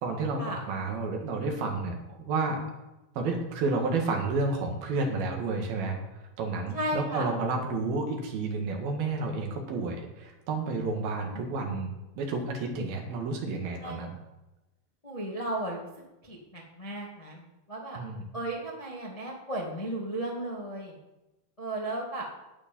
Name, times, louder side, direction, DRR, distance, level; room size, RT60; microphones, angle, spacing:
voice 1, 0.0-0.4 0.7-2.6 3.2-6.0 6.4-14.1 18.0-18.2, right 3 dB, 70° right, 2 dB, 3.6 m, -31 dB
voice 2, 6.7-7.3 11.2-11.4 13.8-14.0 15.0-15.9 16.2-17.4 17.7-18.0 18.3-21.0 21.6-22.2, right 1 dB, 25° left, -2 dB, 0.8 m, -35 dB
12.0 x 9.7 x 5.4 m, 0.97 s
omnidirectional pair, 4.6 m